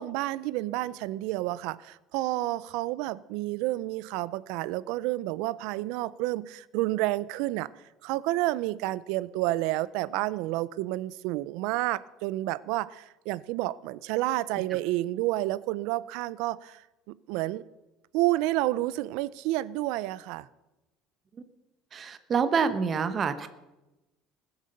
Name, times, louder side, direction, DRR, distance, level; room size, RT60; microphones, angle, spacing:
voice 1, 0.0-7.7 8.0-16.8 17.3-17.6 18.1-20.5, right 17 dB, 75° right, 0.4 m, -30 dB
voice 2, 21.9-23.5, right 6 dB, 30° right, 0.8 m, -27 dB
20.5 x 8.0 x 6.6 m
cardioid pair, 150°, 0 cm